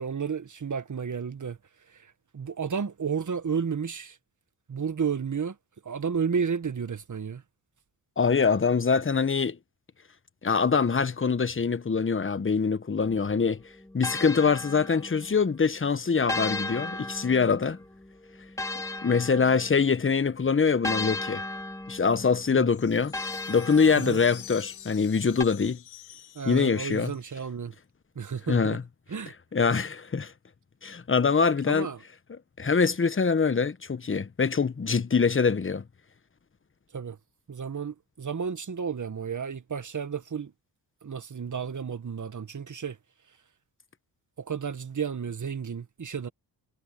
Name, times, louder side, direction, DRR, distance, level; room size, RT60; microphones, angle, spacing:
voice 1, 0.0-1.6 1.9-2.1 2.3-4.2 4.7-5.5 5.8-7.4 22.5-22.7 23.9-24.2 26.3-27.7 28.1-28.8 29.1-29.3 31.7-32.0 36.9-37.2 37.5-40.5 41.0-43.0 44.4-46.3, right 6 dB, 40° right, 1.7 m, -32 dB
voice 2, 8.2-9.6 10.4-13.6 13.9-17.8 19.0-21.4 21.9-25.8 26.4-27.1 28.5-28.8 29.5-30.3 30.8-31.9 32.6-35.8, left 5 dB, 25° left, 1.2 m, -24 dB
sound 1, 13.0-15.5 16.3-20.1 20.8-24.6 25.4-25.5, left 2 dB, 5° left, 2.7 m, -36 dB
sound 2, 22.7-27.4, left 10 dB, 85° left, 2.9 m, -47 dB
cardioid pair, 60°, 45 cm